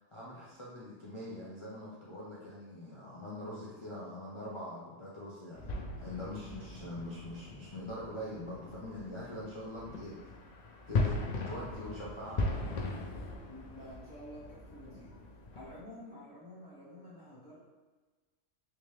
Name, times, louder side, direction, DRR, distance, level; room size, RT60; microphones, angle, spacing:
voice 1, 0.0-5.7 6.0-10.1 10.9-11.2 11.5-12.7, left 1 dB, 35° left, -8 dB, 0.6 m, -43 dB
sound 1, 5.5-15.8, left 2 dB, 90° left, 0.3 m, -38 dB
voice 2, 13.5-15.2 15.5-17.6, left 1 dB, 40° right, -9 dB, 1.5 m, -50 dB
3.5 x 2.9 x 3.1 m, 1.3 s
omnidirectional pair, 1.3 m